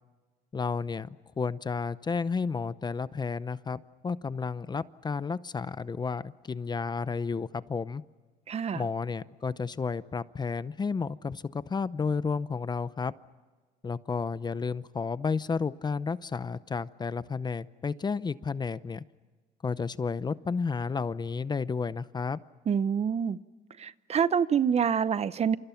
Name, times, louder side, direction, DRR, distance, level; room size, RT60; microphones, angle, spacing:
voice 1, 0.5-1.1 1.4-8.0 8.7-13.1 13.8-19.0 19.6-22.4, left 5 dB, 25° left, 16 dB, 0.7 m, -32 dB
voice 2, 8.5-8.9 22.7-23.4 23.8-25.6, right 7 dB, 40° right, 16 dB, 0.8 m, -26 dB
28.5 x 27.5 x 5.9 m, 1.3 s
cardioid pair, 110°, 17 cm